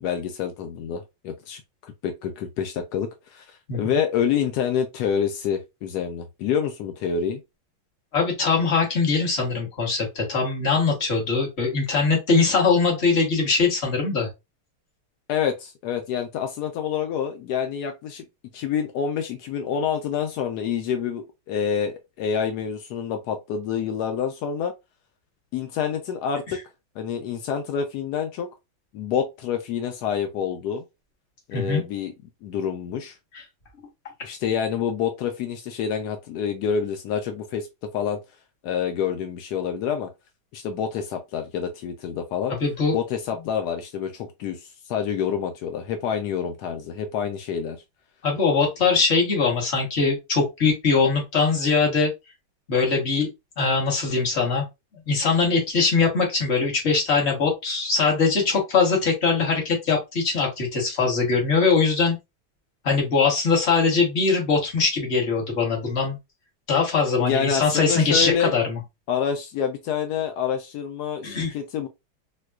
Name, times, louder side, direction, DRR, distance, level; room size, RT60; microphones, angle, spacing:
voice 1, 0.0-7.4 15.3-18.3 18.5-24.7 25.5-26.6 27.0-28.5 28.9-30.8 31.5-32.1 32.4-33.2 34.2-37.7 37.9-38.2 38.6-40.1 40.5-42.5 42.9-47.8 67.2-68.5 69.1-71.9, left 7 dB, 85° left, 0.8 m, -27 dB
voice 2, 3.7-4.0 8.1-14.3 31.5-31.8 42.6-43.0 48.2-52.1 52.7-53.3 53.6-54.6 55.1-62.2 62.8-66.2 66.7-68.8 71.2-71.5, left 4 dB, 40° left, 1.1 m, -22 dB
4.4 x 2.2 x 2.3 m
omnidirectional pair, 2.3 m